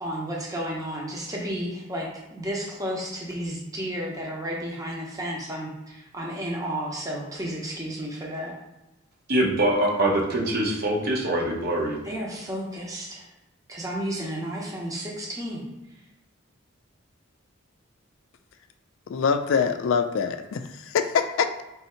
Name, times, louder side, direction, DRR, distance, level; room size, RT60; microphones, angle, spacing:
voice 1, 0.0-8.5 12.0-13.3 13.7-15.6, equal, 15° right, -3 dB, 0.8 m, -32 dB
voice 2, 9.3-12.0, right 1 dB, 45° right, -3 dB, 0.9 m, -23 dB
voice 3, 19.1-21.6, left 6 dB, 65° left, 8 dB, 0.3 m, -24 dB
3.4 x 2.8 x 4.3 m, 0.99 s
head